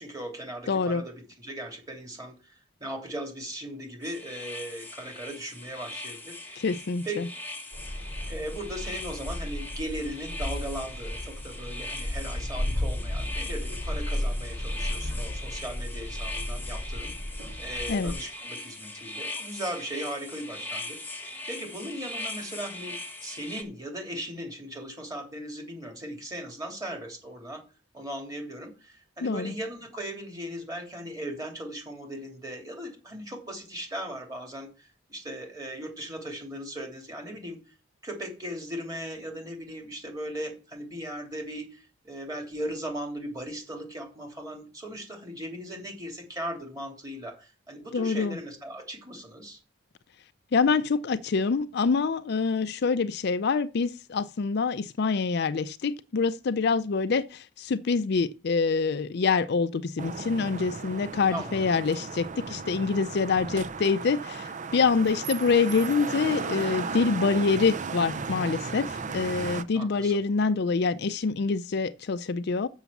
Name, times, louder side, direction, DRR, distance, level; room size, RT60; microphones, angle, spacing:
voice 1, 0.0-6.6 7.0-7.2 8.2-17.1 17.6-22.9 23.2-27.6 27.9-37.6 38.0-49.6 61.3-61.7 69.7-70.2, right 1 dB, 20° right, 3.0 m, -38 dB
voice 2, 0.7-1.0 6.6-7.3 17.9-18.1 29.2-29.5 47.9-48.4 50.5-72.7, left 4 dB, 55° left, 0.4 m, -26 dB
sound 1, 4.0-23.6, left 2 dB, 10° left, 1.3 m, -40 dB
sound 2, 7.7-18.1, left 1 dB, 70° right, 6.4 m, -34 dB
sound 3, 60.0-69.6, right 4 dB, 40° right, 0.5 m, -35 dB
7.0 x 6.3 x 7.1 m
head